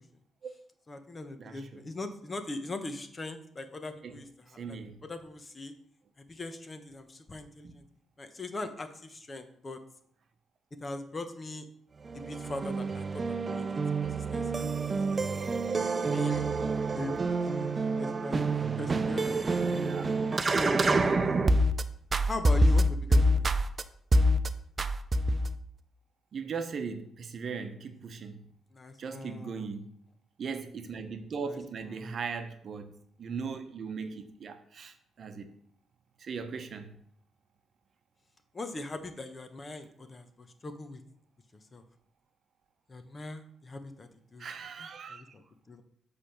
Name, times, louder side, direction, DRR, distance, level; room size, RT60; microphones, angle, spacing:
voice 1, 0.9-5.7 6.2-7.8 8.2-9.8 10.8-11.7 12.1-13.6 14.0-14.7 15.1-15.3 16.1-16.5 16.9-17.7 18.0-18.4 18.8-19.8 20.5-21.4 22.3-23.5 28.7-29.7 31.4-31.6 31.8-32.1 38.5-41.0 41.5-41.8 42.9-44.5 44.8-45.4 45.7-45.8, left 2 dB, 30° left, 0.9 m, -40 dB
voice 2, 1.4-1.8 4.0-4.2 4.6-5.0 7.6-7.7 19.8-20.0 26.3-28.4 29.0-29.9 30.4-32.9 33.2-35.5 36.2-37.0 44.4-45.3, right 5 dB, 55° right, 0.8 m, -39 dB
sound 1, 12.1-21.8 22.1-23.8 24.1-24.5 24.8-25.5, right 1 dB, 35° right, 0.5 m, -27 dB
7.4 x 3.4 x 5.8 m
cardioid pair, 80°, 0 cm